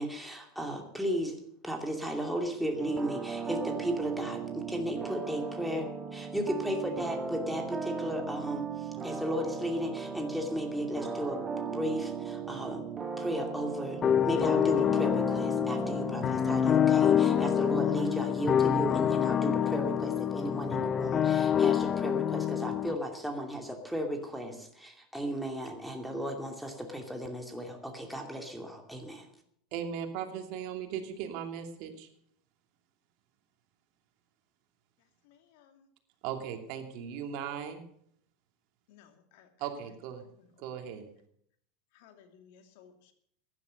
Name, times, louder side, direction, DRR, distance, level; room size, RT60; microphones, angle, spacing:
voice 1, 0.0-1.4 1.6-12.8 13.2-14.0 14.3-29.3, equal, ahead, 2 dB, 2.7 m, -35 dB
sound 1, 2.8-18.0, right 5 dB, 25° right, 1.7 m, -37 dB
sound 2, 14.0-23.0, left 9 dB, 30° left, 0.6 m, -26 dB
voice 2, 29.7-32.1 36.2-37.8 39.6-40.2 40.6-41.1, right 8 dB, 60° right, 5 dB, 2.7 m, -38 dB
voice 3, 35.2-35.9 38.9-40.0 40.4-40.5 40.8-41.0 41.9-43.1, left 8 dB, 70° left, 6 dB, 2.6 m, -59 dB
15.0 x 11.0 x 6.6 m, 0.68 s
hypercardioid pair, 105°, 0 cm